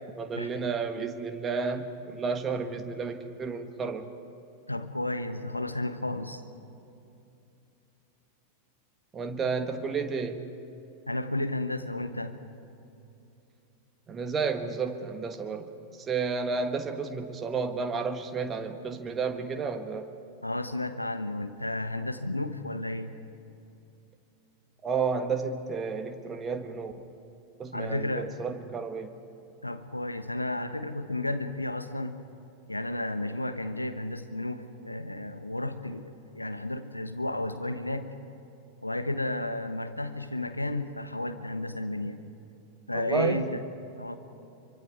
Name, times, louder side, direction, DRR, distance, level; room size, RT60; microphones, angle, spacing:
voice 1, 0.1-4.1 9.1-10.4 14.1-15.7 16.0-20.1 24.8-26.9 27.6-29.1 42.9-43.5, right 5 dB, 20° right, 7 dB, 1.5 m, -31 dB
voice 2, 4.7-6.4 11.1-12.4 20.4-23.2 27.7-28.3 29.6-32.2 32.7-38.1 38.8-42.2 42.9-43.6 44.0-44.2, left 1 dB, 85° left, 9 dB, 1.1 m, -32 dB
25.0 x 24.5 x 4.8 m, 2.9 s
figure-of-eight pair, 90°, 0 cm